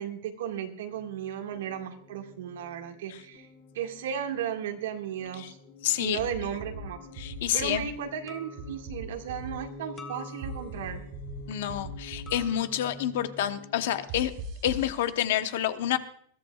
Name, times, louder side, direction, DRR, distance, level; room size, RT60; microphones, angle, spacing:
voice 1, 0.0-3.5 3.7-5.6 6.0-7.0 7.5-11.0, right 9 dB, 80° right, 4 dB, 1.9 m, -35 dB
sound 1, 0.9-14.1, left 2 dB, 85° left, 6.3 m, -48 dB
voice 2, 5.8-6.2 7.2-7.9 11.5-14.3 14.6-16.0, left 11 dB, 65° left, 10 dB, 0.9 m, -28 dB
sound 2, 6.2-6.8 7.2-7.8 8.6-9.5 10.4-11.4 11.7-12.4 14.1-14.9, right 2 dB, 40° right, 1.5 m, -39 dB
sound 3, 6.9-7.1 8.3-8.8 10.0-10.9 12.3-12.9, left 4 dB, 20° left, 1.1 m, -48 dB
21.5 x 14.0 x 2.4 m, 0.65 s
supercardioid pair, 155°, 0 cm